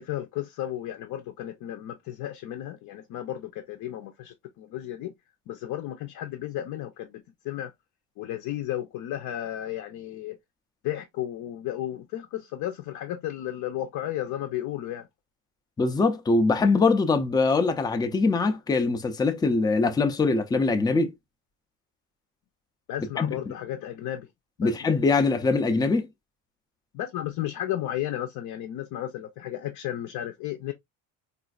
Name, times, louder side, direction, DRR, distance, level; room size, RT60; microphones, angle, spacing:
voice 1, 0.0-5.1 5.5-7.7 8.2-10.4 10.8-15.1 22.9-24.3 24.6-24.9 26.9-30.7, left 12 dB, 65° left, 0.6 m, -33 dB
voice 2, 15.8-21.1 23.2-23.3 24.6-26.1, left 3 dB, 10° left, 0.4 m, -23 dB
4.0 x 2.5 x 2.3 m
cardioid pair, 135°, 37 cm